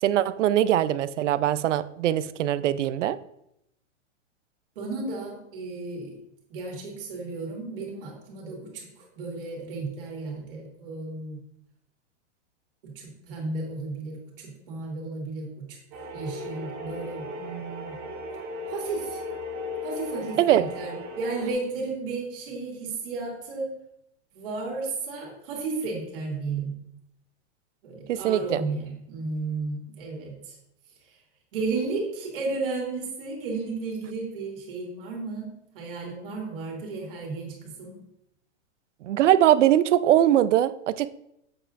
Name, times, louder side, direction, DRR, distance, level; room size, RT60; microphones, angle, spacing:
voice 1, 0.0-3.2 20.4-20.6 28.1-28.6 39.0-41.1, right 12 dB, 80° right, 15 dB, 0.5 m, -21 dB
voice 2, 4.8-6.2 6.5-11.4 12.8-18.0 18.7-19.2 19.8-23.7 24.3-26.7 27.8-30.5 31.1-31.2 31.5-38.0, right 3 dB, 50° right, -1 dB, 2.4 m, -33 dB
sound 1, 15.9-21.5, left 2 dB, 15° right, 0.6 m, -36 dB
7.6 x 6.8 x 2.5 m, 0.78 s
supercardioid pair, 175°, 36 cm